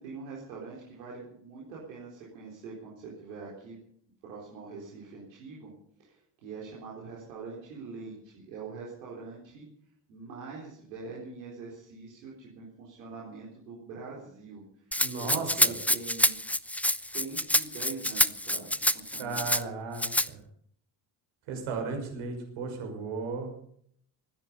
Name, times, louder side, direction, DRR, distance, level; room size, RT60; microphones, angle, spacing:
voice 1, 0.0-3.8 4.2-5.7 6.0-9.7 10.1-14.6 15.2-16.4 16.8-19.5, right 4 dB, 90° right, -5 dB, 4.1 m, -44 dB
Rattle (instrument), 14.9-19.6 20.0-20.3, left 1 dB, 5° left, 0.6 m, -27 dB
voice 2, 15.0-15.8 19.2-20.4 21.5-23.5, right 4 dB, 75° right, 3 dB, 6.1 m, -35 dB
24.5 x 10.0 x 5.5 m, 0.65 s
hypercardioid pair, 55°, 50 cm